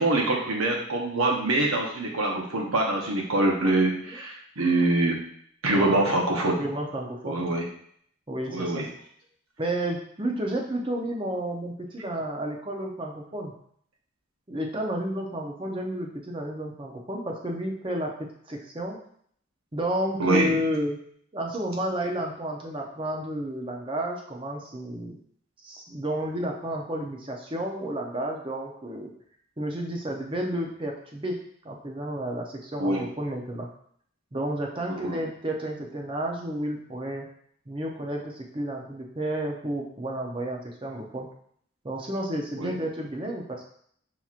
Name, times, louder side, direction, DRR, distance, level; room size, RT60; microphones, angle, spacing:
voice 1, 0.0-5.2 5.6-6.6 7.2-7.7 8.5-8.9 20.2-20.5 32.8-33.0 34.9-35.2 42.6-42.8, right 2 dB, 85° right, 0 dB, 1.0 m, -24 dB
voice 2, 5.7-6.0 6.6-7.5 8.3-8.9 9.6-13.5 14.5-19.0 19.7-21.0 21.3-25.2 25.6-29.1 29.6-31.4 31.6-33.7 34.3-37.3 37.7-41.3 41.8-43.6, right 1 dB, 25° right, 0 dB, 0.6 m, -31 dB
5.6 x 3.0 x 2.4 m, 0.63 s
head